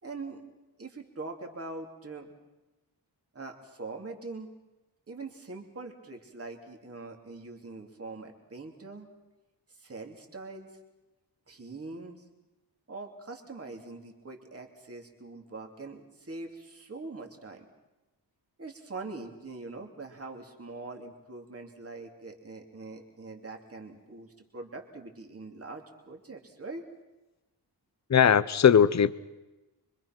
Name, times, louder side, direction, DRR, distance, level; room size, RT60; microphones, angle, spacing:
voice 1, 0.0-0.4 0.8-2.3 3.3-4.5 5.1-9.1 9.7-10.7 11.5-12.2 12.9-17.7 18.6-26.8, right 3 dB, 35° right, 3 dB, 3.1 m, -43 dB
voice 2, 28.1-29.1, left 8 dB, 40° left, 16 dB, 0.8 m, -20 dB
25.5 x 25.0 x 6.1 m, 1.0 s
wide cardioid pair, 165°, 41 cm